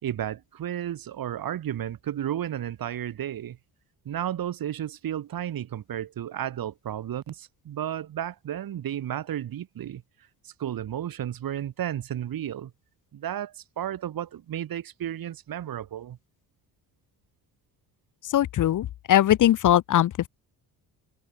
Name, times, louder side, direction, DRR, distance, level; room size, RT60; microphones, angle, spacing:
voice 1, 0.0-3.6 4.1-10.0 10.4-12.7 13.1-16.2, right 11 dB, 60° right, 4.1 m, -33 dB
voice 2, 18.2-20.3, left 12 dB, 50° left, 0.7 m, -21 dB
cardioid pair, 135°, 39 cm